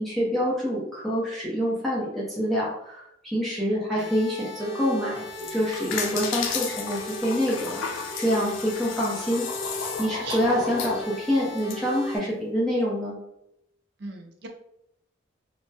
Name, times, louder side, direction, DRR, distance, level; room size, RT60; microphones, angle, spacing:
voice 1, 0.0-9.5 10.0-13.1, equal, ahead, -8 dB, 0.6 m, -26 dB
voice 2, 3.7-4.1 10.2-10.7 14.0-14.5, right 3 dB, 60° right, 3 dB, 0.5 m, -39 dB
sound 1, 4.0-12.2, left 1 dB, 20° right, 1.0 m, -37 dB
sound 2, 5.2-11.8, left 5 dB, 80° left, 0.5 m, -33 dB
3.3 x 2.1 x 2.7 m, 0.79 s
head